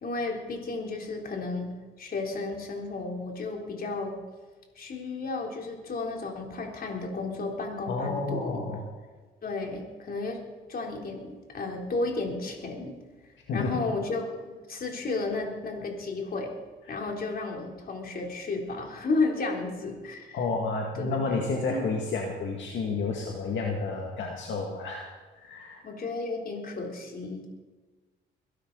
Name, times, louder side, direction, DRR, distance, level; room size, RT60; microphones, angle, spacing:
voice 1, 0.0-4.2 4.8-8.6 9.4-10.4 10.7-12.9 13.5-16.5 16.9-20.4 21.0-21.1 21.7-21.8 25.8-27.5, left 3 dB, 50° left, 1 dB, 3.6 m, -33 dB
voice 2, 7.9-8.9 13.5-13.8 16.9-17.0 20.3-25.1 25.4-25.8, left 3 dB, 70° left, 0 dB, 2.2 m, -30 dB
22.5 x 12.5 x 4.1 m, 1.3 s
cardioid pair, 90°, 20 cm